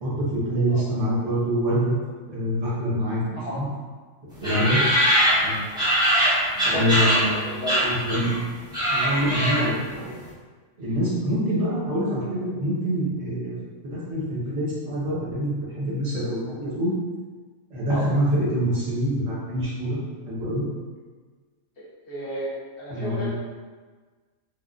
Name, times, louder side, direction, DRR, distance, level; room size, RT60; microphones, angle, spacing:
voice 1, 0.0-1.9 2.3-3.6 4.4-4.8 5.4-5.6 6.6-8.3 8.9-10.2 10.8-16.9 17.7-20.0 20.3-20.6 22.9-23.3, equal, 75° right, -9 dB, 1.4 m, -25 dB
voice 2, 4.4-4.8 5.7-5.9 6.6-8.0 17.9-18.1 22.1-22.5 22.8-23.3, equal, 50° left, -8 dB, 0.8 m, -33 dB
sound 1, 4.4-7.3 7.7-8.4 8.6-9.8, equal, 5° right, 0.6 m, -22 dB
3.4 x 2.2 x 2.5 m, 1.4 s
omnidirectional pair, 1.4 m